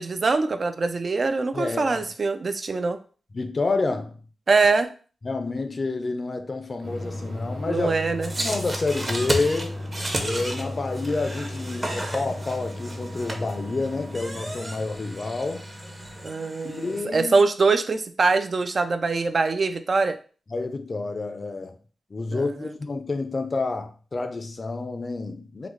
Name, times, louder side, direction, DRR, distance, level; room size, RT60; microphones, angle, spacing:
voice 1, 0.0-3.0 4.5-4.9 7.7-8.3 16.2-20.2 22.3-22.5, right 4 dB, 50° right, 0.3 m, -23 dB
voice 2, 1.5-2.0 3.3-4.2 5.2-7.9 8.4-9.8 10.2-15.6 16.6-17.3 20.5-21.8 22.1-25.7, left 3 dB, 40° left, 0.4 m, -29 dB
sound 1, 6.8-16.3, left 1 dB, 75° right, 1.1 m, -36 dB
sound 2, 8.2-17.0, right 1 dB, 30° right, 0.7 m, -33 dB
3.8 x 2.0 x 3.1 m
cardioid pair, 75°, 0 cm